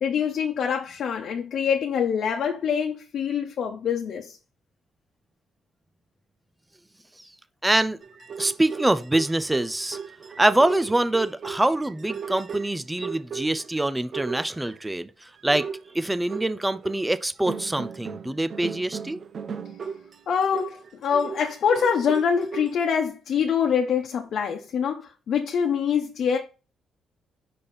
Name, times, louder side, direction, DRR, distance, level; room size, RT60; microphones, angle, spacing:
voice 1, 0.0-4.4 20.3-26.4, left 7 dB, 65° left, 1.0 m, -25 dB
voice 2, 7.6-8.0 8.4-10.0 10.4-15.7 15.9-19.2, right 1 dB, 10° right, 0.6 m, -24 dB
sound 1, 8.0-13.8 14.1-14.9 15.4-17.0 17.5-22.8, right 6 dB, 50° right, 0.6 m, -36 dB
5.3 x 5.1 x 4.4 m
cardioid pair, 90°, 0 cm